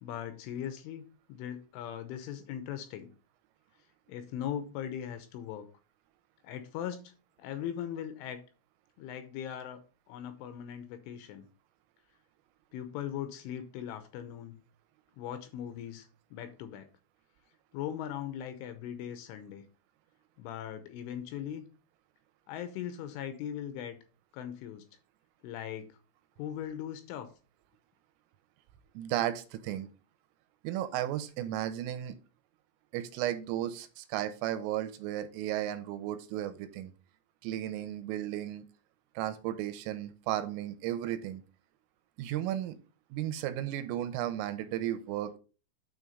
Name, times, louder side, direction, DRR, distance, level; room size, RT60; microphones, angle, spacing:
voice 1, 0.0-1.0 1.3-3.1 4.1-5.7 6.4-7.1 7.4-8.4 9.0-9.8 10.1-11.5 12.7-14.6 15.2-16.9 17.7-19.6 20.4-21.6 22.5-24.0 24.3-24.9 25.4-25.9 26.4-27.3, left 10 dB, 80° left, 9 dB, 3.0 m, -39 dB
voice 2, 29.0-29.9 30.6-32.2 32.9-36.9 37.4-38.6 39.2-41.4 42.2-42.8 43.1-45.4, right 12 dB, 85° right, 10 dB, 3.2 m, -34 dB
9.2 x 3.6 x 5.4 m, 0.35 s
omnidirectional pair, 5.9 m